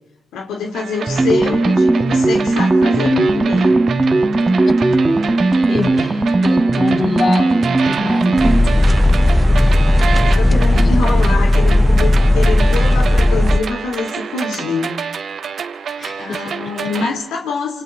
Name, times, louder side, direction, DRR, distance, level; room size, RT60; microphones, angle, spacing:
voice 1, 0.3-3.8 9.2-9.6 10.2-14.9 16.2-17.8, left 4 dB, 80° left, 1 dB, 2.8 m, -25 dB
sound 1, 0.7-17.1, right 6 dB, 55° right, 1.2 m, -28 dB
sound 2, 1.1-8.7, right 2 dB, 20° right, 1.6 m, -16 dB
voice 2, 5.7-8.4 10.7-10.9 16.0-16.4, left 3 dB, 50° left, -3 dB, 7.1 m, -24 dB
sound 3, 8.4-13.6, left 1 dB, 5° left, 0.9 m, -13 dB
27.0 x 27.0 x 3.7 m, 1.1 s
cardioid pair, 90°, 0 cm